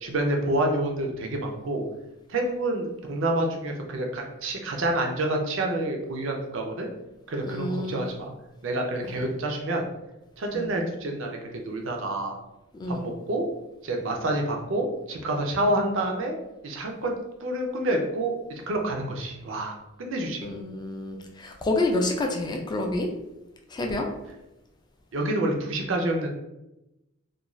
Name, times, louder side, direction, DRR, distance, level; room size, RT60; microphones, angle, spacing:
voice 1, 0.0-1.9 2.3-6.9 7.3-8.3 8.6-9.9 10.4-11.4 11.6-12.4 12.9-13.4 13.8-16.4 16.6-17.1 17.4-19.7 20.0-20.5 25.1-26.3, right 1 dB, 65° right, 2 dB, 0.5 m, -28 dB
voice 2, 7.5-8.0 9.1-9.2 10.5-10.8 12.7-13.0 20.4-23.1 23.7-24.1, left 2 dB, 20° left, 2 dB, 0.3 m, -28 dB
2.5 x 2.3 x 3.0 m, 0.94 s
head